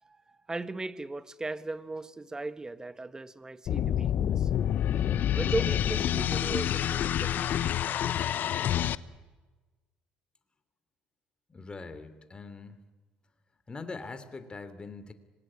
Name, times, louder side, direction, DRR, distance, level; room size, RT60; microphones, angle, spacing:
voice 1, 0.0-4.5 5.3-7.6 8.0-8.1, right 2 dB, 20° right, 1.4 m, -37 dB
sound 1, 3.7-8.9, left 10 dB, 55° left, 0.8 m, -28 dB
voice 2, 11.5-12.8 13.7-15.1, left 4 dB, 25° left, 2.9 m, -42 dB
25.5 x 20.5 x 9.9 m
hypercardioid pair, 65°, 4 cm